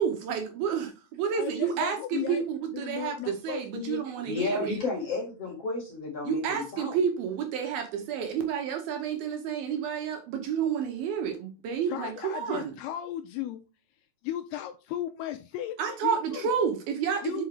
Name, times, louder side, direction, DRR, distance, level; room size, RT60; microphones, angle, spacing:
voice 1, 0.0-4.8 6.2-12.7 15.8-17.4, right 7 dB, 75° right, 4 dB, 2.5 m, -30 dB
voice 2, 1.3-2.4 2.8-4.1 11.9-13.6 14.2-16.5 17.2-17.4, left 12 dB, 85° left, 8 dB, 2.3 m, -35 dB
voice 3, 4.3-7.0, left 3 dB, 50° left, 0 dB, 2.0 m, -32 dB
6.2 x 5.6 x 3.2 m, 0.32 s
omnidirectional pair, 4.9 m